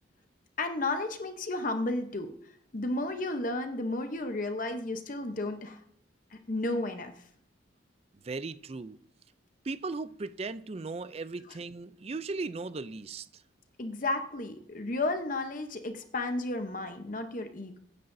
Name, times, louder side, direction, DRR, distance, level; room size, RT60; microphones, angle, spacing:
voice 1, 0.6-2.3 2.7-5.8 6.5-7.1 13.8-17.8, left 2 dB, 40° left, 0.8 m, -32 dB
voice 2, 8.2-9.0 9.6-13.3, right 3 dB, 30° right, 0.4 m, -37 dB
23.0 x 9.6 x 2.7 m
head